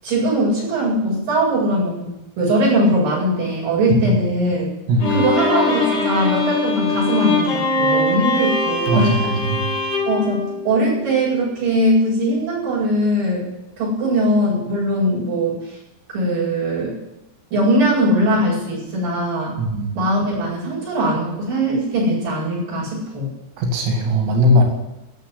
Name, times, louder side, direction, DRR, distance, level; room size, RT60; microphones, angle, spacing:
voice 1, 0.0-4.7 5.1-9.2 10.1-13.4 13.8-15.8 16.1-17.0 17.5-19.6 19.9-23.3, right 1 dB, 45° right, -6 dB, 9.6 m, -20 dB
voice 2, 4.9-5.2 8.9-9.6 19.6-19.9 23.6-24.6, equal, 90° right, 2 dB, 5.0 m, -18 dB
Bowed string instrument, 5.0-11.3, left 3 dB, 45° left, 3.6 m, -22 dB
17.0 x 7.2 x 9.8 m, 0.92 s
omnidirectional pair, 5.7 m